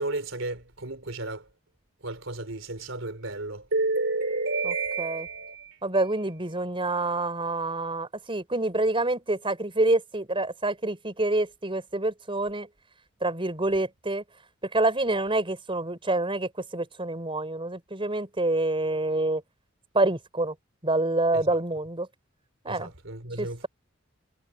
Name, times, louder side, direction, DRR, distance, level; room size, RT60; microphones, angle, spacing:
voice 1, 0.0-1.5 2.0-5.8 6.1-6.2 21.3-21.4 22.7-23.7, right 2 dB, 70° right, 4.1 m, -31 dB
voice 2, 4.6-5.3 5.8-12.7 13.2-14.2 14.6-19.4 19.9-20.6 20.8-22.1 22.6-22.9 23.4-23.7, right 2 dB, 25° right, 5.1 m, -27 dB
head